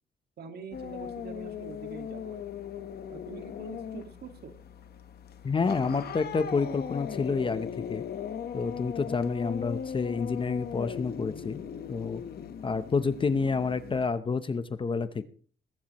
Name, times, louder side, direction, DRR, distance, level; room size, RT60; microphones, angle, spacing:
voice 1, 0.4-2.4 3.1-4.5, right 6 dB, 60° right, 7 dB, 1.9 m, -44 dB
sound 1, 0.7-14.1, left 8 dB, 60° left, 1.2 m, -39 dB
voice 2, 5.4-8.0 8.5-11.6 11.9-12.2 12.6-15.2, left 4 dB, 25° left, 12 dB, 0.7 m, -29 dB
20.5 x 12.0 x 3.0 m, 0.43 s
cardioid pair, 145°, 19 cm